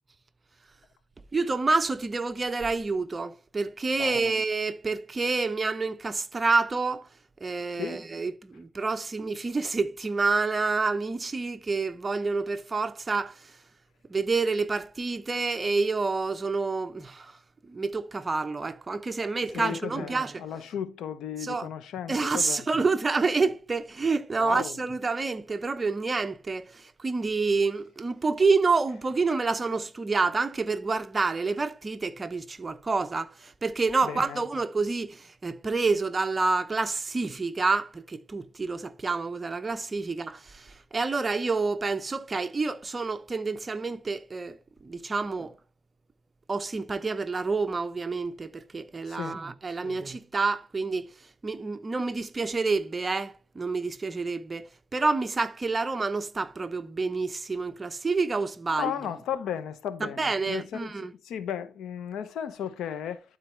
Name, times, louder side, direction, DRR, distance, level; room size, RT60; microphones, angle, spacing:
voice 1, 1.3-7.1 7.4-13.5 14.1-20.4 21.4-21.7 22.1-44.6 44.8-45.5 46.5-51.1 51.4-58.9 60.0-61.1, right 3 dB, 25° right, 0.8 m, -28 dB
voice 2, 19.5-22.6 24.4-24.7 34.0-34.4 49.1-49.4 49.8-50.0 58.8-63.2, left 9 dB, 75° left, 0.9 m, -35 dB
12.0 x 4.5 x 3.3 m
cardioid pair, 90°, 0 cm